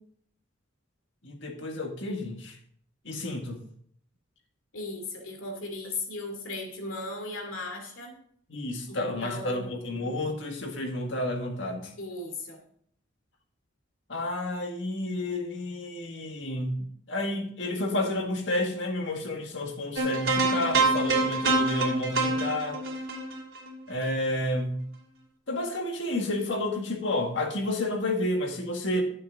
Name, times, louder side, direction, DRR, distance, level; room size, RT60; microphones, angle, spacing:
voice 1, 1.2-2.6 3.0-3.6 8.5-11.9 14.1-22.8 23.9-24.8 25.5-29.0, left 1 dB, 65° left, 3 dB, 1.8 m, -30 dB
voice 2, 4.7-8.1 8.9-10.1 12.0-12.6, left 2 dB, 90° left, 2 dB, 2.6 m, -37 dB
sound 1, 20.0-24.3, right 3 dB, 80° right, 2.6 m, -26 dB
12.5 x 7.5 x 3.7 m, 0.63 s
head